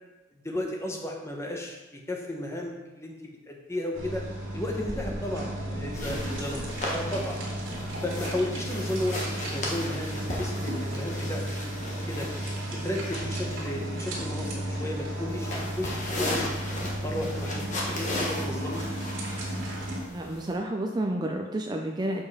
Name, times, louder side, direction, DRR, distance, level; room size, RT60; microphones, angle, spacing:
voice 1, 0.4-3.1 3.4-4.2 4.5-7.4 8.0-12.3 12.8-16.6 17.0-18.8, left 1 dB, 15° left, 0 dB, 1.0 m, -34 dB
sound 1, 3.9-20.0, right 1 dB, 75° right, 2.1 m, -33 dB
sound 2, 5.9-20.5, left 1 dB, 40° left, 1.4 m, -37 dB
voice 2, 20.1-22.2, right 1 dB, 20° right, 2 dB, 0.4 m, -30 dB
6.9 x 5.3 x 4.2 m, 1.1 s
head